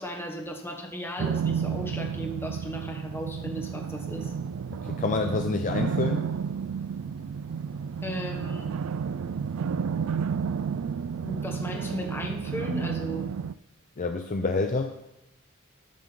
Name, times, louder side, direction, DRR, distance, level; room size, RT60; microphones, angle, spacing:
voice 1, 0.0-4.3 8.0-8.7 11.2-13.3, equal, 10° left, 2 dB, 1.2 m, -36 dB
sound 1, 1.2-13.5, right 6 dB, 70° right, 0.3 m, -31 dB
voice 2, 4.7-6.3 14.0-14.9, left 3 dB, 35° left, 5 dB, 0.5 m, -28 dB
12.5 x 6.1 x 4.0 m, 0.90 s
head